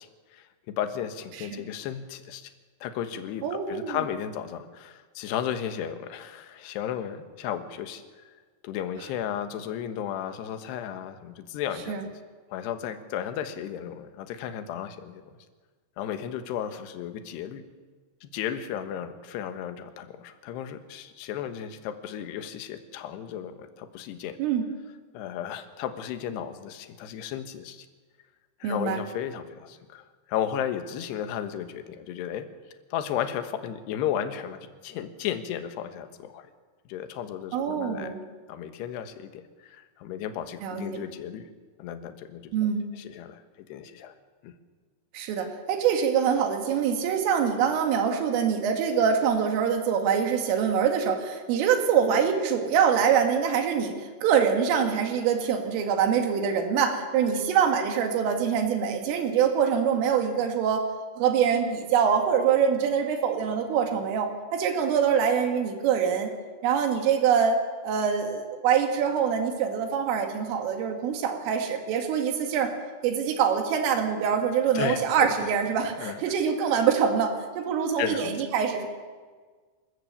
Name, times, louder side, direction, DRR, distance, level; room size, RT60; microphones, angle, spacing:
voice 1, 0.0-2.5 2.8-8.3 8.6-12.0 12.5-15.2 16.0-17.6 18.2-24.4 25.1-27.9 28.6-32.5 32.9-36.5 36.9-38.2 38.5-41.5 41.8-44.1 44.4-44.5 57.3-57.4 74.7-75.3 75.8-76.2 78.0-78.3, left 9 dB, 70° left, 9 dB, 3.1 m, -34 dB
voice 2, 3.4-4.0 11.9-12.0 24.4-24.7 28.6-29.0 37.5-38.2 40.6-41.0 42.5-42.8 45.1-60.9 61.2-66.3 66.6-72.7 73.0-78.9, right 7 dB, 85° right, 5 dB, 4.7 m, -24 dB
26.5 x 14.0 x 8.5 m, 1.5 s
omnidirectional pair, 5.7 m